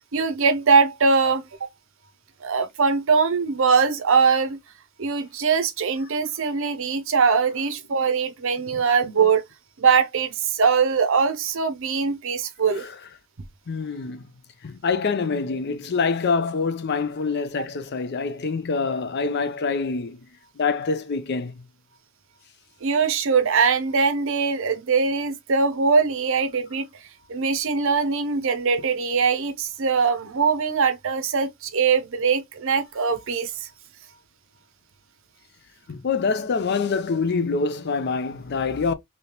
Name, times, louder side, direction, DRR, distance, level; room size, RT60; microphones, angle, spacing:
voice 1, 0.0-1.7 2.4-4.6 5.0-9.4 9.8-12.8 22.8-26.9 27.3-33.7, right 5 dB, 60° right, 0.6 m, -22 dB
voice 2, 13.7-14.3 14.6-20.2 20.6-21.5 35.9-38.9, left 4 dB, 50° left, 0.5 m, -25 dB
3.3 x 2.8 x 2.8 m
head